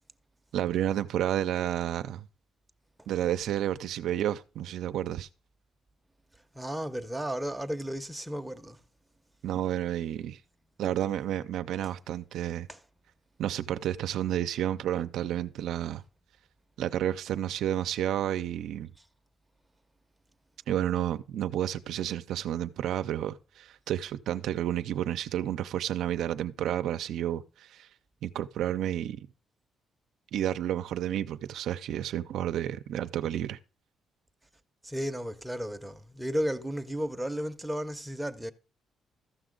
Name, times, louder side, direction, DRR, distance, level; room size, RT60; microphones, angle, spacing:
voice 1, 0.5-2.3 3.1-5.3 9.4-10.4 10.8-12.7 13.4-16.0 16.8-18.9 20.7-27.9 28.2-29.2 30.3-33.6, right 11 dB, 80° right, 0.4 m, -31 dB
voice 2, 6.5-8.8 12.7-12.8 34.8-38.5, equal, 5° right, 0.7 m, -34 dB
14.0 x 6.0 x 3.8 m
cardioid pair, 90°, 0 cm